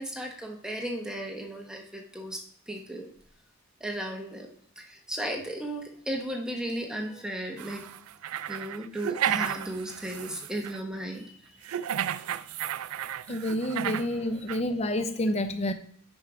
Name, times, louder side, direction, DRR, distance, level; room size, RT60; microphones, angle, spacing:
voice 1, 0.0-2.4 2.7-3.1 3.8-7.8 8.5-11.3 11.6-11.7 12.5-12.7, right 1 dB, 5° right, 1.1 m, -35 dB
sound 1, 7.6-10.8 11.6-14.1 14.5-14.6, right 10 dB, 80° right, 0.3 m, -33 dB
voice 2, 13.3-15.7, left 1 dB, 30° left, 0.6 m, -29 dB
6.5 x 5.4 x 4.9 m
head